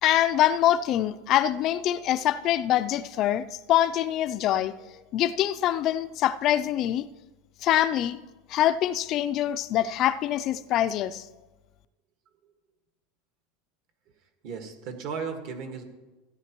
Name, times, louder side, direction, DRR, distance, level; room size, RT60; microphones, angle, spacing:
voice 1, 0.0-7.1 7.6-8.2 8.5-11.3, left 12 dB, 40° left, 0.3 m, -24 dB
voice 2, 14.4-15.8, right 5 dB, 55° right, 1.6 m, -35 dB
16.5 x 10.0 x 3.0 m
supercardioid pair, 150°, 0 cm